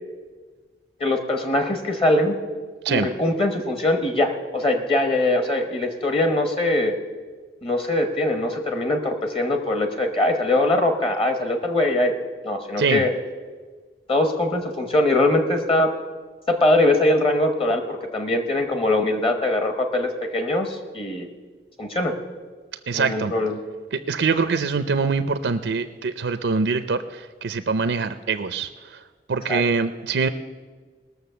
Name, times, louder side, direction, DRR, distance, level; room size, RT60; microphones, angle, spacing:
voice 1, 1.0-2.4 2.9-7.0 7.6-12.1 12.4-13.1 14.1-15.9 16.5-21.3 21.8-22.1 22.9-23.6 29.5-29.6, left 1 dB, 30° left, 6 dB, 1.0 m, -22 dB
voice 2, 22.9-23.3 23.9-29.0 29.3-30.3, right 4 dB, 85° right, 11 dB, 0.5 m, -24 dB
19.5 x 6.6 x 6.8 m, 1.5 s
head